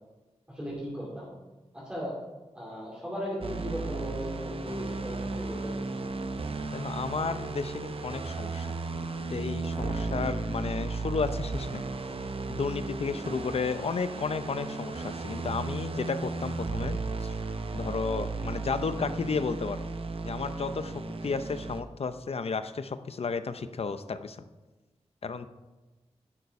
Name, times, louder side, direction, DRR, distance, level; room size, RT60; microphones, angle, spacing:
voice 1, 0.5-1.3 1.7-2.1 2.5-5.7, equal, 10° right, -8 dB, 2.8 m, -37 dB
sound 1, 3.4-21.8, right 3 dB, 55° right, 0.8 m, -35 dB
voice 2, 6.7-8.7 9.3-11.8 12.5-17.3 17.7-19.8 20.2-20.9 21.2-24.4 25.2-25.5, left 5 dB, 60° left, 11 dB, 0.6 m, -32 dB
11.0 x 6.8 x 4.7 m, 1.1 s
wide cardioid pair, 110°, 11 cm